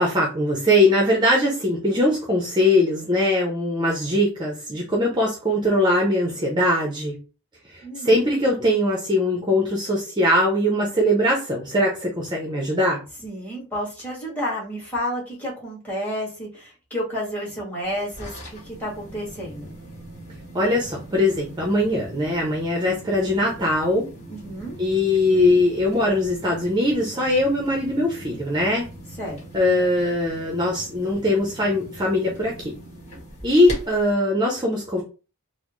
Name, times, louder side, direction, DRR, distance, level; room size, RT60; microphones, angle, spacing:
voice 1, 0.0-7.2 8.0-13.0 20.5-24.1 24.8-28.9 29.5-32.7 33.4-35.0, left 1 dB, 20° right, -1 dB, 0.6 m, -21 dB
voice 2, 7.8-8.1 13.2-19.7 24.3-24.8 29.2-29.4, equal, 10° left, -4 dB, 1.8 m, -31 dB
sound 1, 17.8-34.1, right 1 dB, 30° left, 1.9 m, -41 dB
3.9 x 2.0 x 3.1 m, 0.33 s
head